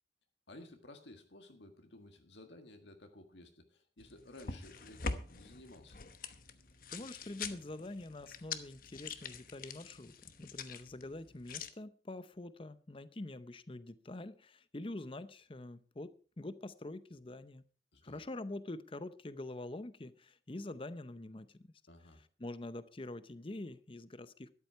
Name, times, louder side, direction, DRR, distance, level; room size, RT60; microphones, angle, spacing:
voice 1, 0.5-6.0 17.9-18.3 21.9-22.2, left 1 dB, 70° left, 1.8 m, -55 dB
sound 1, 4.0-11.7, left 4 dB, 50° left, 1.0 m, -45 dB
voice 2, 6.9-10.1 10.4-17.6 18.0-21.7 22.4-24.5, left 2 dB, 30° left, 0.6 m, -45 dB
13.0 x 11.0 x 4.7 m
head